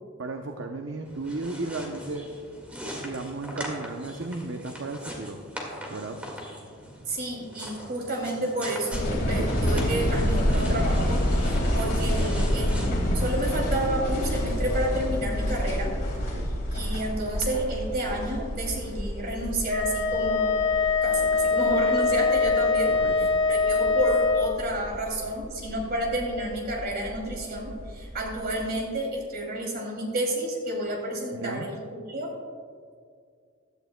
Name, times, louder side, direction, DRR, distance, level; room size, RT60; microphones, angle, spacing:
voice 1, 0.2-2.3 3.0-5.4 5.9-6.2 16.3-16.5 22.9-23.3 31.3-31.7, right 2 dB, 65° right, 3 dB, 0.7 m, -34 dB
sound 1, 1.0-13.5, equal, 5° right, 1.8 m, -41 dB
voice 2, 7.1-15.9 16.7-20.6 21.0-22.9 23.2-31.7 32.1-32.3, right 1 dB, 50° right, -1 dB, 2.6 m, -30 dB
sound 2, 8.9-28.5, equal, 50° left, 1.9 m, -29 dB
Wind instrument woodwind instrument, 19.7-24.5, left 4 dB, 80° left, 2.8 m, -23 dB
16.0 x 12.0 x 2.2 m, 2.1 s
head